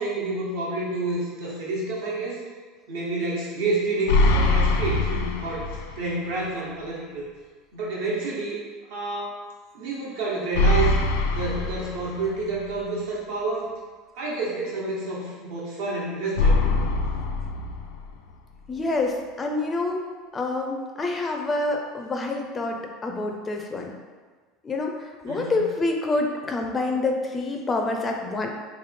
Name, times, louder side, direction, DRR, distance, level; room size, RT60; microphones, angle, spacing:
voice 1, 0.0-2.4 2.9-7.3 7.7-8.6 8.9-9.4 9.7-10.9 11.3-13.7 14.1-16.6 25.3-25.6, right 2 dB, 80° right, -5 dB, 1.2 m, -29 dB
sound 1, 4.1-6.1 6.4-6.5 10.5-12.5 16.4-18.3, left 2 dB, 85° left, 0.4 m, -23 dB
voice 2, 18.7-20.0 20.3-23.9 24.6-28.5, left 2 dB, 20° left, 2 dB, 0.4 m, -27 dB
3.2 x 3.1 x 3.4 m, 1.4 s
supercardioid pair, 135°, 0 cm